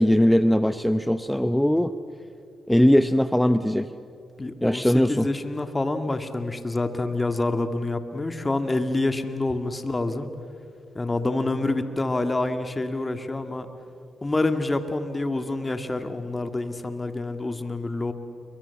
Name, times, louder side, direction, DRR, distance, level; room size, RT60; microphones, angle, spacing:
voice 1, 0.0-1.9 2.7-3.9 4.6-5.3, equal, 5° left, 12 dB, 1.0 m, -20 dB
voice 2, 4.4-10.3 10.9-13.7 14.2-18.1, left 2 dB, 30° left, 8 dB, 2.2 m, -27 dB
29.0 x 24.0 x 7.2 m, 2.6 s
supercardioid pair, 45°, 0 cm